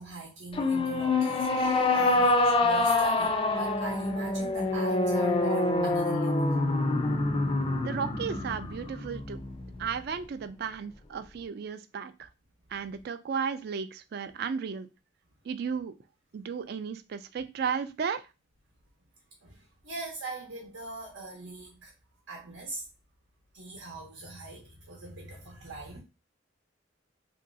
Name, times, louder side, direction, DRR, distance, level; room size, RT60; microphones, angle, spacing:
voice 1, 0.0-6.5 19.4-21.9 22.3-22.9 23.5-26.0, right 2 dB, 80° right, 0.9 m, -41 dB
sound 1, 0.5-9.9, left 2 dB, 30° left, 0.3 m, -26 dB
voice 2, 7.8-9.4 9.8-12.3 12.7-14.9 15.4-15.9 16.3-18.2, right 6 dB, 55° right, 0.3 m, -34 dB
3.0 x 2.6 x 2.6 m
head